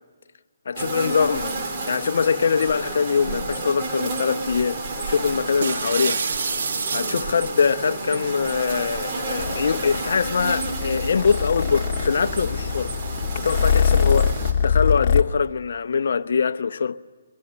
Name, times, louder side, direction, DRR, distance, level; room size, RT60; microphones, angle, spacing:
voice 1, 0.7-1.5 1.9-4.8 5.1-6.2 6.9-12.9 13.4-14.3 14.6-17.0, left 6 dB, 60° left, 0.9 m, -23 dB
sound 1, 0.8-14.5, right 3 dB, 35° right, 3.4 m, -31 dB
sound 2, 5.6-7.7, right 5 dB, 60° right, 1.6 m, -27 dB
Purr, 9.4-15.2, left 6 dB, 30° left, 1.7 m, -23 dB
23.5 x 22.0 x 8.8 m
hypercardioid pair, 160°, 0 cm